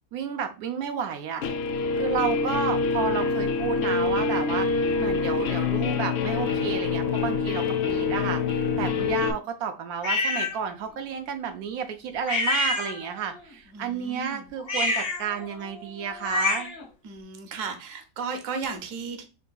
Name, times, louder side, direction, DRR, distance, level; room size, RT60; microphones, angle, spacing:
voice 1, 0.1-1.4 2.0-4.7 5.0-16.7, right 7 dB, 85° right, 6 dB, 1.1 m, -31 dB
Guitar, 1.4-9.3, left 4 dB, 65° left, 0.7 m, -25 dB
sound 1, 10.0-10.6 12.3-13.3 14.6-16.9, left 2 dB, 45° left, 1.1 m, -27 dB
voice 2, 13.7-14.5 17.0-19.3, right 5 dB, 70° right, 7 dB, 1.1 m, -35 dB
6.4 x 2.6 x 2.2 m, 0.31 s
omnidirectional pair, 1.5 m